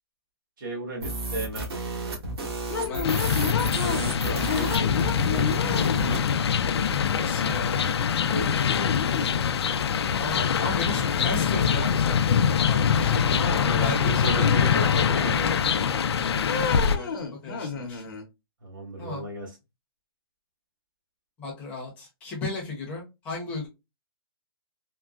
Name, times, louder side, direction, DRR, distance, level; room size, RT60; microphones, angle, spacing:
voice 1, 0.6-1.8 3.8-6.2 8.2-9.1 13.5-15.5 18.6-19.6, right 1 dB, 50° right, 1.5 m, -35 dB
sound 1, 1.0-6.2, right 2 dB, 80° right, 1.4 m, -33 dB
sound 2, 2.7-4.1 4.5-6.4 7.8-7.9 8.3-9.5 10.8-11.8 12.1-13.4 13.9-14.7 15.1-16.0 16.4-18.2, left 5 dB, 55° left, 0.8 m, -33 dB
voice 2, 2.8-3.3 7.1-7.9 10.1-13.5 13.8-15.6 16.3-17.1 17.4-18.1 19.0-19.2 21.4-23.7, left 3 dB, 10° left, 0.7 m, -35 dB
sound 3, 3.0-17.0, left 7 dB, 85° left, 0.4 m, -24 dB
3.6 x 2.1 x 2.3 m
hypercardioid pair, 175°, 13 cm